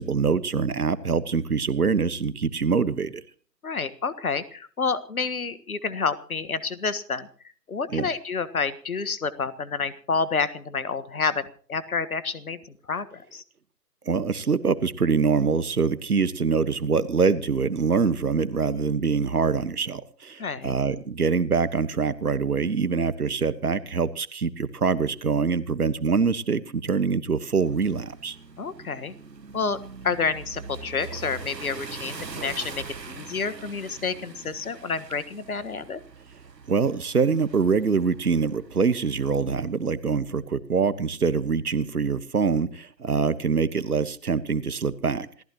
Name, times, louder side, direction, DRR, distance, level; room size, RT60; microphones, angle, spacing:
voice 1, 0.0-3.1 7.9-8.1 14.1-28.4 36.7-45.3, right 5 dB, 65° right, 15 dB, 1.4 m, -24 dB
voice 2, 3.6-7.3 7.7-13.4 20.4-20.7 28.6-29.1 29.5-29.8 30.0-36.0, left 5 dB, 60° left, 16 dB, 1.6 m, -29 dB
sound 1, 27.5-39.6, right 4 dB, 80° right, 1.4 m, -43 dB
27.5 x 15.0 x 3.0 m, 0.43 s
figure-of-eight pair, 145°, 49 cm